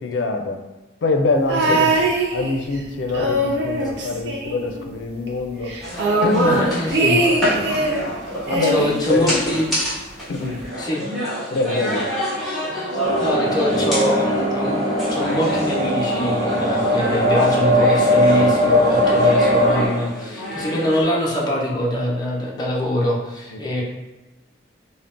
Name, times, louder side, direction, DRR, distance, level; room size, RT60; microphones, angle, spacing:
voice 1, 0.0-0.6 1.0-2.1 2.3-5.8 6.2-6.6 7.5-7.7 8.1-8.2 8.5-9.5 10.3-10.6 11.5-12.0 23.5-23.6, left 3 dB, 90° left, 4 dB, 0.4 m, -24 dB
sound 1, 1.5-2.8 3.1-5.0 5.3-5.4 5.7-8.1 8.5-9.7 10.6-10.7, right 1 dB, 65° right, 0.4 m, -22 dB
sound 2, 5.8-21.0, equal, ahead, 0.9 m, -29 dB
voice 2, 6.4-7.3 8.6-9.7 10.8-11.0 13.2-14.8 15.1-23.8, left 1 dB, 25° left, -4 dB, 0.5 m, -23 dB
sound 3, 13.0-19.9, equal, 90° right, 1.1 m, -19 dB
3.6 x 2.1 x 2.4 m, 1.1 s
head